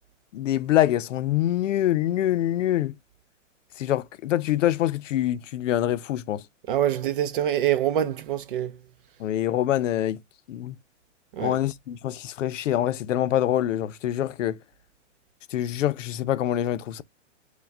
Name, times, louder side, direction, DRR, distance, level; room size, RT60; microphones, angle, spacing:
voice 1, 0.3-2.9 3.8-6.4 9.2-10.2 10.5-10.8 11.4-14.6 15.5-17.0, left 12 dB, 80° left, 0.6 m, -25 dB
voice 2, 6.7-8.7 11.4-11.6, right 11 dB, 45° right, 0.5 m, -25 dB
4.7 x 2.3 x 3.3 m
hypercardioid pair, 155°, 37 cm